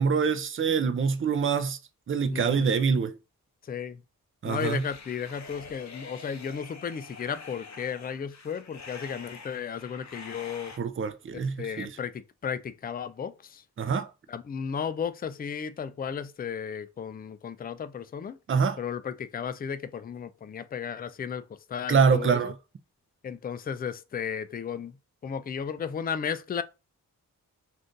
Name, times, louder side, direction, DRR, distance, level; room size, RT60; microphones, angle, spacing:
voice 1, 0.0-1.8 2.1-3.1 4.4-4.8 10.8-11.9 13.8-14.1 18.5-18.8 21.9-22.5, right 5 dB, 35° right, 0.5 m, -25 dB
voice 2, 2.3-2.7 3.6-4.0 4.4-10.8 11.3-13.6 14.3-18.4 18.8-21.4 21.7-22.5 23.2-25.0 25.2-26.6, left 7 dB, 25° left, 0.4 m, -34 dB
sound 1, 4.6-10.8, left 4 dB, 50° left, 0.8 m, -46 dB
2.6 x 2.5 x 3.6 m
cardioid pair, 45°, 36 cm